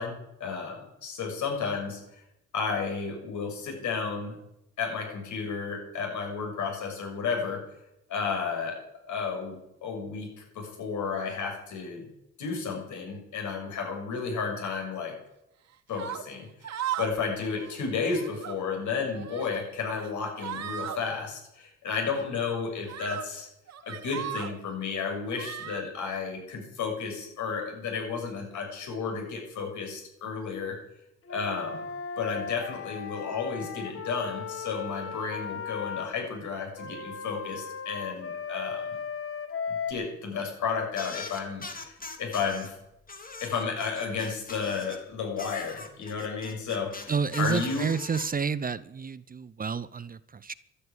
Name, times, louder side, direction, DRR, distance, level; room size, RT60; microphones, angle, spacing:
voice 1, 0.0-2.0 2.5-4.4 4.8-7.7 8.1-8.8 9.1-12.1 12.4-15.2 15.9-16.7 17.0-23.5 23.8-30.8 31.3-31.8 32.2-39.0 39.7-42.8 43.4-47.9, left 5 dB, 75° left, 2 dB, 6.8 m, -32 dB
sound 1, 15.9-16.2 16.6-17.2 17.5-17.7 18.1-18.6 19.1-19.6 19.9-20.1 20.4-21.0 22.1-22.2 22.9-23.3 23.7-24.6 25.3-25.8, right 10 dB, 60° right, 1.5 m, -36 dB
Wind instrument woodwind instrument, 31.3-36.1 36.8-39.9, left 6 dB, 45° left, 1.8 m, -37 dB
sound 2, 40.9-42.7 43.1-45.0 45.4-48.2, left 3 dB, 30° left, 2.8 m, -42 dB
voice 2, 47.1-50.5, right 6 dB, 30° right, 17 dB, 0.7 m, -30 dB
12.5 x 9.8 x 9.8 m, 0.85 s
cardioid pair, 90°, 30 cm